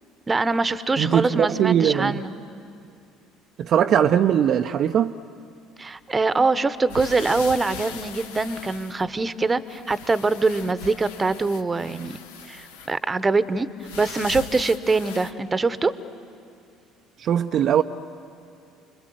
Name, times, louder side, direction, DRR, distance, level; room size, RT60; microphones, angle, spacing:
voice 1, 0.3-2.3 5.8-12.2 12.5-13.7 14.0-15.9, right 3 dB, 25° right, 0.9 m, -23 dB
voice 2, 1.0-2.2 3.6-5.2 17.2-17.8, right 9 dB, 50° right, 0.5 m, -20 dB
sound 1, 6.9-9.4 9.7-13.0 13.8-15.3, left 6 dB, 75° left, 1.0 m, -39 dB
30.0 x 22.0 x 7.7 m
hypercardioid pair, 60°, 0 cm